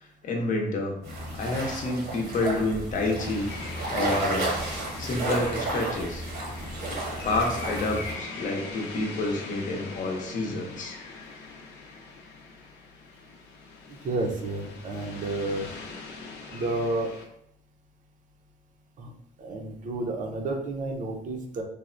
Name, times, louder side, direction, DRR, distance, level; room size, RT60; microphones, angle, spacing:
voice 1, 0.2-1.0 1.3-3.5 3.9-4.5 5.0-6.2 7.2-11.0, left 2 dB, 50° left, 1 dB, 0.7 m, -28 dB
sound 1, 1.0-8.1, right 2 dB, 75° right, 1.0 m, -32 dB
sound 2, 3.2-17.3, left 3 dB, 85° left, 0.6 m, -42 dB
voice 2, 13.9-15.7 16.5-17.1 19.0-19.1 19.4-21.6, right 2 dB, 50° right, 3 dB, 0.6 m, -31 dB
3.4 x 2.1 x 2.5 m, 0.78 s
cardioid pair, 110°, 17 cm